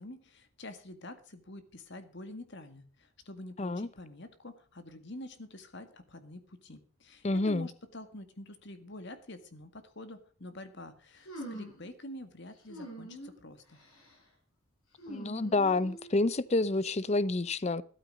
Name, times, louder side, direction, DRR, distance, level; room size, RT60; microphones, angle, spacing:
voice 1, 0.0-13.8, left 1 dB, 55° left, 1.8 m, -47 dB
voice 2, 7.2-7.7 15.1-17.8, left 2 dB, 30° left, 0.5 m, -28 dB
sound 1, 11.3-11.9 12.7-13.4 13.7-14.2 15.0-16.2, right 1 dB, 75° left, 7.2 m, -44 dB
13.0 x 12.0 x 5.0 m
head